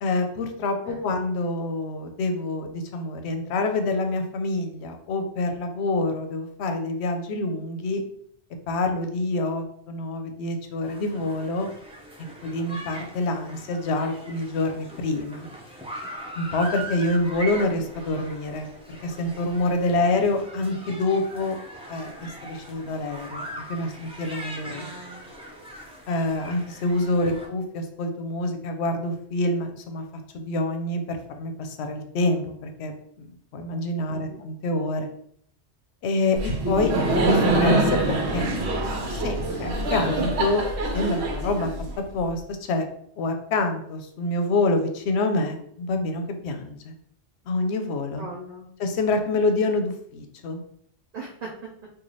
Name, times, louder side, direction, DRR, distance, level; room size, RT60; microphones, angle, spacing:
voice 1, 0.0-8.0 8.7-11.7 12.4-15.5 16.4-18.7 19.0-21.6 21.9-24.9 26.1-30.0 30.3-35.1 36.0-38.5 39.0-40.6 40.9-41.7 42.1-42.9 43.2-46.9 47.5-48.3 48.8-50.6, left 2 dB, 75° left, 5 dB, 0.9 m, -27 dB
sound 1, 10.8-27.5, right 1 dB, 5° right, 0.5 m, -40 dB
voice 2, 24.7-25.2 34.1-34.4 48.2-48.7 51.1-51.5, right 2 dB, 45° right, -3 dB, 0.6 m, -40 dB
Laughter, 36.4-42.2, right 2 dB, 75° right, 1.0 m, -24 dB
3.1 x 2.5 x 3.9 m, 0.67 s
omnidirectional pair, 1.1 m